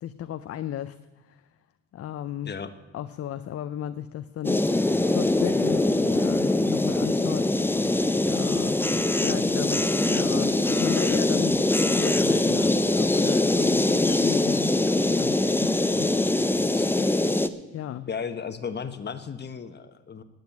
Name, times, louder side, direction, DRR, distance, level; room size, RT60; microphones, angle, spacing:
voice 1, 0.0-1.0 1.3-1.4 1.9-2.5 2.9-7.5 8.3-11.6 11.9-16.1 16.9-17.3 17.7-18.1, left 11 dB, 50° left, 12 dB, 0.5 m, -35 dB
sound 1, 4.4-17.5, left 2 dB, 5° left, 0.6 m, -23 dB
voice 2, 18.1-20.2, left 6 dB, 35° left, 10 dB, 1.0 m, -34 dB
9.5 x 9.1 x 9.2 m, 1.1 s
cardioid pair, 90°, 30 cm